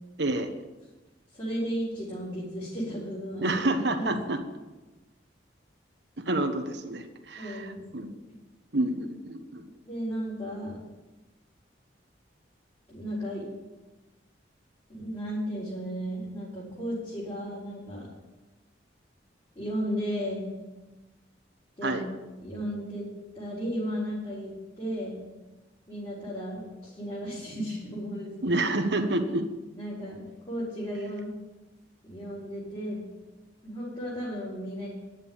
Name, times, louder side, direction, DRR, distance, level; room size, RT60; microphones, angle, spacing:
voice 1, 0.2-0.5 3.4-4.4 6.2-8.1 8.7-9.6 21.8-22.1 28.4-29.4, right 2 dB, 65° right, 6 dB, 1.3 m, -28 dB
voice 2, 1.3-3.6 4.0-4.1 7.4-8.1 9.8-10.8 12.9-13.5 14.9-18.1 19.5-20.5 21.8-22.0 22.4-23.1 23.3-25.2 25.9-28.5 29.8-31.3 32.0-33.0 33.6-34.9, equal, 25° left, -9 dB, 4.3 m, -34 dB
10.5 x 7.6 x 8.8 m, 1.1 s
head